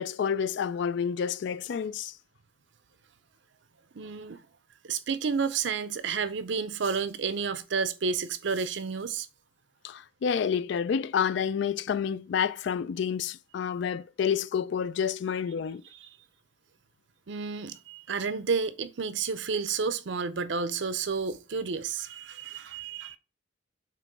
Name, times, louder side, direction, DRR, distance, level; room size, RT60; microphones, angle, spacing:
voice 1, 0.0-2.1 9.8-15.8, left 7 dB, 60° left, 0.3 m, -29 dB
voice 2, 3.9-4.4 4.8-9.3 15.9-16.1 17.3-23.2, right 5 dB, 65° right, 0.5 m, -31 dB
7.6 x 3.0 x 4.6 m
head